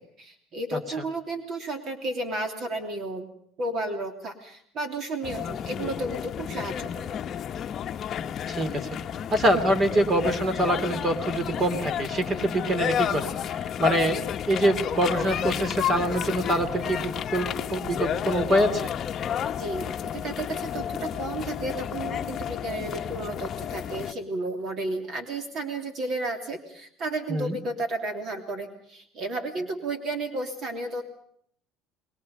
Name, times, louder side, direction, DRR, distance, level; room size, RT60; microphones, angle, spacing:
voice 1, 0.0-3.3 3.6-7.2 19.6-31.0, right 2 dB, 50° right, 5 dB, 3.0 m, -33 dB
sound 1, 5.2-24.1, left 9 dB, 40° left, 1.0 m, -31 dB
voice 2, 8.5-9.0 9.3-14.2 14.5-18.9 27.3-27.6, right 1 dB, 30° right, 9 dB, 2.7 m, -25 dB
27.5 x 21.5 x 5.4 m, 0.65 s
supercardioid pair, 115°, 0 cm